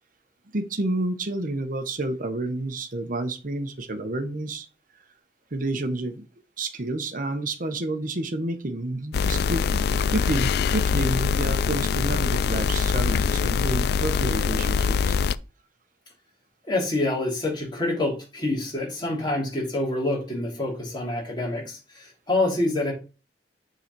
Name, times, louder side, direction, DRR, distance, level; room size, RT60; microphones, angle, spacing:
voice 1, 0.5-4.7 5.5-6.2 6.6-9.8 10.1-15.2, right 2 dB, 50° right, 8 dB, 1.0 m, -29 dB
sound 1, 9.1-15.3, left 6 dB, 65° left, 0.3 m, -23 dB
voice 2, 16.7-22.9, left 2 dB, 25° left, -3 dB, 3.0 m, -27 dB
6.9 x 3.9 x 4.6 m, 0.32 s
head